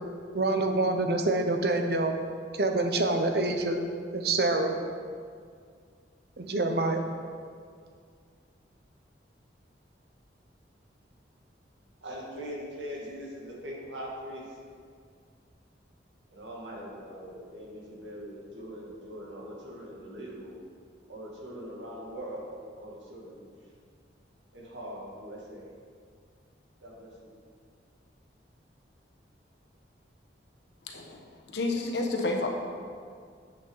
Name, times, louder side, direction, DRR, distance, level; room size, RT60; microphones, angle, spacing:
voice 1, 0.3-2.1 2.5-3.8 4.1-4.7 6.4-7.0, right 2 dB, 55° right, 5 dB, 0.8 m, -26 dB
voice 2, 12.0-14.6 16.3-20.6 21.1-22.5 22.8-23.4 24.5-25.7 26.8-27.3, equal, 85° right, -3 dB, 2.2 m, -41 dB
voice 3, 30.9-32.5, left 2 dB, 70° left, 1 dB, 1.1 m, -30 dB
8.1 x 6.7 x 5.6 m, 2.1 s
head